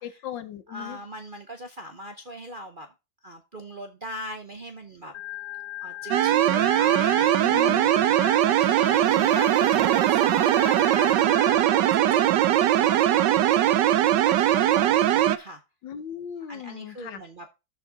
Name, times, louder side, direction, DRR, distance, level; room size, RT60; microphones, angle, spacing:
voice 1, 0.0-1.0 7.4-7.9 9.1-10.0 15.8-17.2, left 9 dB, 80° left, 1.6 m, -38 dB
voice 2, 0.7-2.9 3.2-5.1 5.8-13.8 14.2-15.6 16.5-17.5, equal, 45° right, 0.7 m, -41 dB
Organ, 5.1-11.6, left 15 dB, 60° left, 1.2 m, -39 dB
sound 1, 6.1-15.4, right 12 dB, 75° right, 1.3 m, -20 dB
13.0 x 4.8 x 4.0 m
omnidirectional pair, 2.0 m